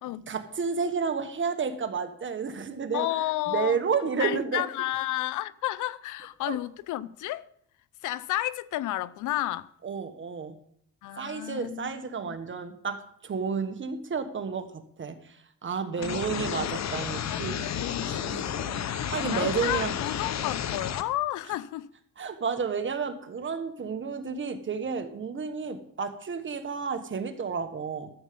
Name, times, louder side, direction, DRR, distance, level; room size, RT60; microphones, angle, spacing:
voice 1, 0.3-3.1 3.5-4.6 6.4-6.6 9.8-10.6 11.2-13.0 13.2-15.2 15.6-19.9 22.2-28.1, right 5 dB, 40° right, 1.5 m, -31 dB
voice 2, 2.9-3.8 4.2-7.5 8.0-9.7 11.0-12.3 16.0-16.9 17.3-21.9, left 15 dB, 85° left, 0.6 m, -32 dB
sound 1, 16.0-21.0, left 9 dB, 60° left, 0.9 m, -32 dB
13.5 x 7.3 x 5.3 m
cardioid pair, 90°, 30 cm